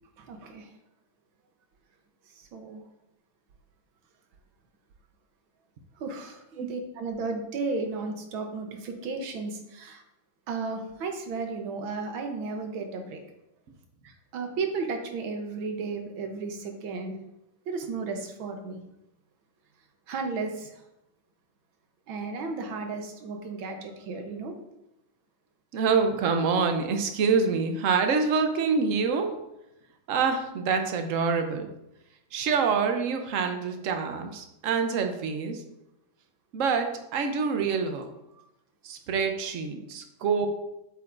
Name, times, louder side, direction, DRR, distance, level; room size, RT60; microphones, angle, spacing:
voice 1, 0.3-0.7 2.5-2.8 6.0-10.0 10.5-13.2 14.3-17.1 17.7-18.8 20.1-20.7 22.1-24.5, right 4 dB, 90° right, 5 dB, 1.8 m, -34 dB
voice 2, 25.7-29.3 30.1-31.7 32.3-35.6 36.5-38.1 38.8-40.5, right 5 dB, 65° right, 6 dB, 0.8 m, -26 dB
7.8 x 6.8 x 2.6 m, 0.87 s
omnidirectional pair, 2.1 m